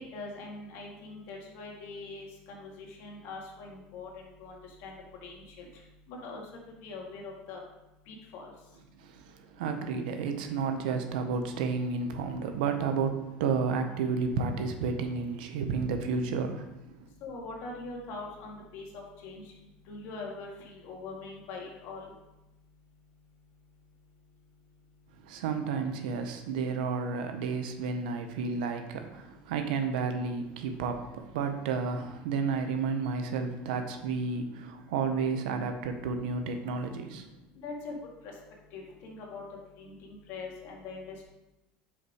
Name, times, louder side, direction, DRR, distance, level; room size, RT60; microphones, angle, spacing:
voice 1, 0.0-5.0 5.2-5.7 6.1-6.4 6.8-7.6 8.1-8.5 17.2-19.4 19.9-22.1 37.6-38.0 38.2-38.3 38.7-39.4 39.8-41.2, left 3 dB, 60° left, 0 dB, 1.9 m, -42 dB
voice 2, 9.0-16.7 17.0-17.1 25.2-37.3, right 5 dB, 85° right, 6 dB, 0.9 m, -31 dB
5.6 x 4.8 x 4.9 m, 0.95 s
supercardioid pair, 125°, 5 cm